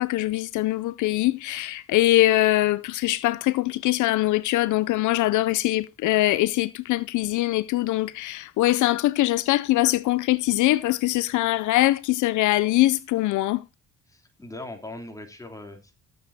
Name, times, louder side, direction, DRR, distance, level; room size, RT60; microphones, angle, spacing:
voice 1, 0.0-13.6, left 16 dB, 80° left, 0.5 m, -22 dB
voice 2, 14.1-16.0, left 2 dB, 10° left, 3.2 m, -40 dB
18.5 x 7.9 x 2.8 m
cardioid pair, 90°, 30 cm